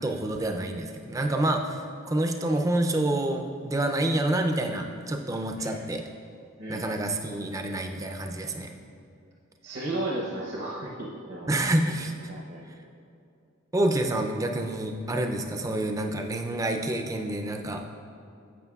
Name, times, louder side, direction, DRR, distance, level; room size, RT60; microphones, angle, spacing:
voice 1, 0.0-1.8 2.1-6.0 6.7-8.7 11.5-12.1 13.7-17.8, right 1 dB, 15° right, 4 dB, 0.4 m, -28 dB
voice 2, 5.6-6.0 6.6-7.1 9.6-11.5 12.3-12.7, right 1 dB, 55° right, -5 dB, 0.8 m, -35 dB
11.0 x 7.6 x 2.3 m, 2.5 s
head